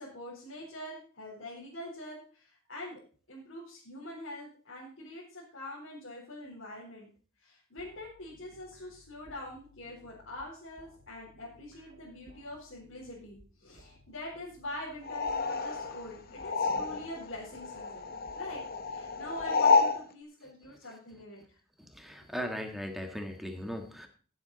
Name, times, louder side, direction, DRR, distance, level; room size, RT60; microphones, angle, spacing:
voice 1, 0.0-3.0 3.3-7.1 7.4-21.6, left 1 dB, 60° left, -7 dB, 4.0 m, -44 dB
sound 1, 7.8-20.0, left 1 dB, 55° right, 2.1 m, -60 dB
sound 2, 15.0-17.3 17.5-20.0, left 4 dB, 45° left, 0.8 m, -29 dB
voice 2, 21.8-24.1, equal, ahead, 4 dB, 1.5 m, -38 dB
16.5 x 7.7 x 4.1 m, 0.40 s
head